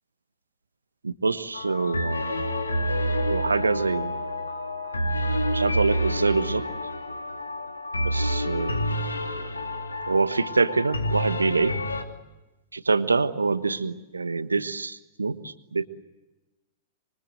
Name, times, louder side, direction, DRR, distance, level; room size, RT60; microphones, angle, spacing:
voice 1, 1.0-2.4 3.3-4.2 5.5-6.7 8.0-9.0 10.1-11.8 12.7-15.9, right 4 dB, 80° right, 12 dB, 1.3 m, -25 dB
sound 1, 1.5-12.0, equal, 80° left, 2.3 m, -28 dB
26.5 x 24.5 x 7.9 m, 1.1 s
figure-of-eight pair, 100°, 0 cm